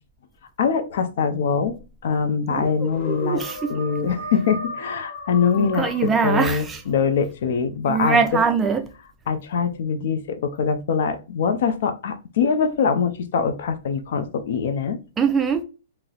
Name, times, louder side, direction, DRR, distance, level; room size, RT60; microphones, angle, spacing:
voice 1, 0.6-3.4 3.7-8.2 9.3-15.0, left 6 dB, 65° left, 0.5 m, -23 dB
voice 2, 2.5-3.8 5.6-6.8 7.9-8.9 15.2-15.6, right 5 dB, 15° right, 0.3 m, -23 dB
sound 1, 2.8-6.9, left 1 dB, 45° left, 0.9 m, -36 dB
3.9 x 2.0 x 2.3 m
hypercardioid pair, 135°, 0 cm